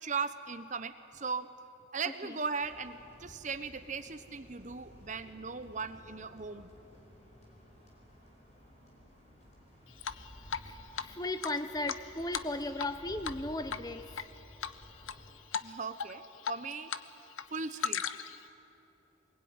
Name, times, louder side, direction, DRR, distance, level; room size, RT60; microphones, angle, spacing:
voice 1, 0.0-1.5 1.9-6.7 15.6-16.9 17.5-18.0, right 5 dB, 40° right, 10 dB, 0.9 m, -38 dB
sound 1, 2.6-15.3, equal, 35° left, 5.0 m, -55 dB
Drip, 10.0-10.7 11.0-11.1 11.4-13.0 13.2-13.4 13.7-14.2 14.6-15.2 15.5-15.7 16.0-17.0 17.3-18.4, left 7 dB, 85° left, 0.8 m, -36 dB
voice 2, 10.6-14.3, left 2 dB, 20° left, 9 dB, 0.9 m, -36 dB
23.5 x 21.0 x 9.6 m, 2.9 s
head